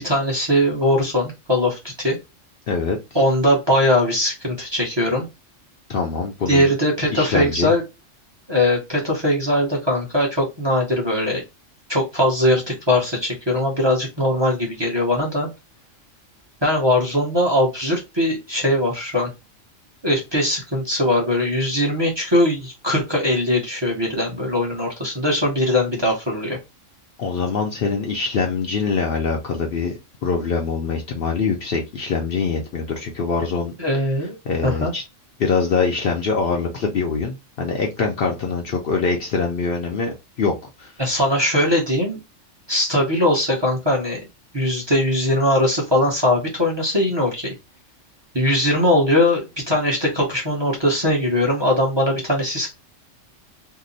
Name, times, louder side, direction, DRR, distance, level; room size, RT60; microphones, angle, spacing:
voice 1, 0.0-2.2 3.1-5.3 6.5-7.8 8.5-11.4 11.9-15.5 16.6-19.3 20.0-26.6 33.8-34.4 34.6-34.9 41.0-42.2 42.7-44.2 44.5-47.5 48.3-52.7, left 1 dB, 25° right, 0.7 m, -20 dB
voice 2, 2.7-3.0 5.9-6.7 7.1-7.7 27.2-33.7 34.5-35.0 35.4-40.5 40.8-40.9, left 5 dB, 60° left, 0.7 m, -23 dB
2.8 x 2.0 x 3.8 m
omnidirectional pair, 1.3 m